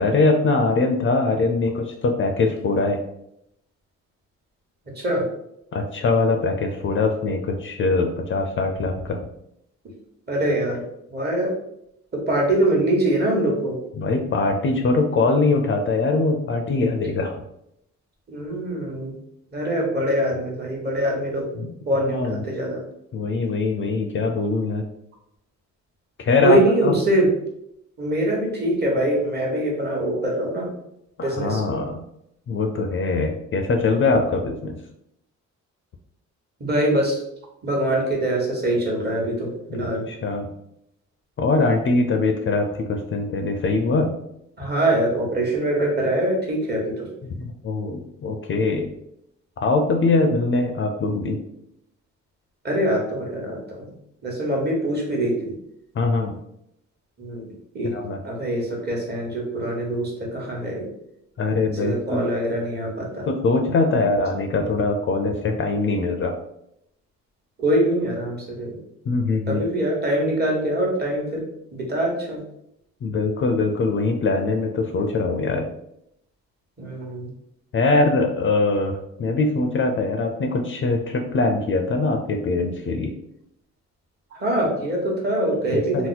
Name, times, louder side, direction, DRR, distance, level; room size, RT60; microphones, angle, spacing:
voice 1, 0.0-3.0 5.7-9.3 14.0-17.4 21.5-21.7 22.1-22.4 23.1-24.9 26.2-26.9 31.2-32.0 32.5-34.8 39.7-40.5 41.4-44.1 47.2-48.9 49.6-51.4 55.9-56.4 57.9-58.2 61.4-62.2 63.3-66.3 69.1-69.6 73.0-75.7 77.7-83.1 85.7-86.1, left 3 dB, 40° left, 4 dB, 0.4 m, -22 dB
voice 2, 10.3-10.8 11.1-11.5 12.1-13.8 18.3-19.2 19.5-21.5 21.9-22.8 26.4-27.3 28.0-30.7 31.2-31.6 36.6-37.2 37.6-40.0 44.6-47.1 52.6-53.9 54.2-55.5 57.2-57.9 58.2-60.9 61.8-63.3 67.6-68.8 69.5-71.4 71.7-72.4 76.8-77.3 84.3-86.1, right 1 dB, 35° right, -1 dB, 1.1 m, -23 dB
2.8 x 2.0 x 4.0 m, 0.78 s
cardioid pair, 90°, 30 cm